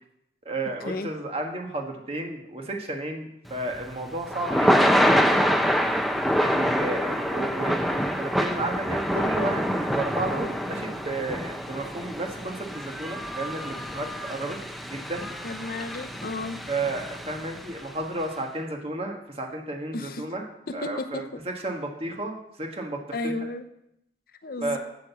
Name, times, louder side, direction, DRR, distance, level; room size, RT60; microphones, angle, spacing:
voice 1, 0.4-5.5 6.4-14.6 14.8-15.2 16.7-20.5 20.7-23.3 24.6-24.8, right 2 dB, 35° right, 2 dB, 1.4 m, -32 dB
Thunder / Rain, 3.5-17.8, equal, ahead, 0.6 m, -26 dB
voice 2, 15.4-16.6 19.9-20.2 20.7-21.4 23.1-23.6 24.4-24.8, left 2 dB, 55° left, 8 dB, 0.8 m, -33 dB
8.2 x 7.6 x 7.1 m, 0.80 s
head